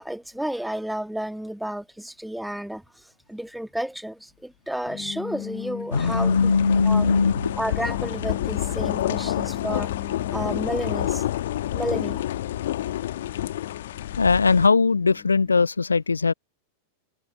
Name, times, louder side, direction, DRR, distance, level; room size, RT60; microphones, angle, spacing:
voice 1, 0.0-2.8 3.3-6.5 6.8-7.1 7.6-9.9 10.3-11.2 11.7-12.2, right 1 dB, ahead, 1.6 m, -31 dB
sound 1, 4.9-15.7, left 15 dB, 35° left, 4.8 m, -41 dB
voice 2, 5.9-7.5 9.1-9.2 14.2-16.3, left 4 dB, 75° left, 0.8 m, -20 dB
sound 2, 5.9-14.7, left 13 dB, 60° left, 1.2 m, -28 dB
sound 3, 7.2-13.1, right 6 dB, 70° right, 2.5 m, -48 dB
figure-of-eight pair, 90°, 0 cm